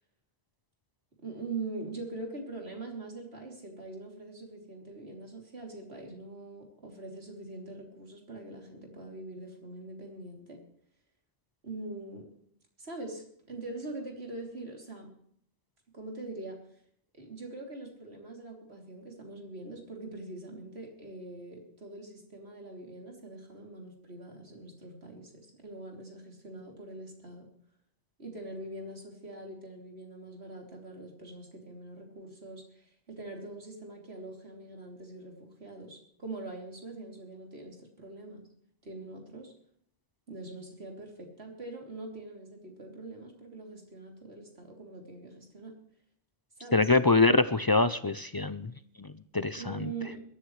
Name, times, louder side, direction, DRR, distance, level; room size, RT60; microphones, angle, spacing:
voice 1, 1.2-10.6 11.6-12.3 12.8-15.1 15.9-16.6 17.1-27.5 28.2-38.4 38.8-39.5 40.3-45.7 46.6-46.9 49.5-50.2, right 2 dB, 65° right, 1 dB, 3.5 m, -43 dB
voice 2, 46.7-48.7 49.0-49.9, left 3 dB, 40° left, 13 dB, 0.3 m, -25 dB
22.0 x 13.0 x 3.2 m, 0.65 s
omnidirectional pair, 1.1 m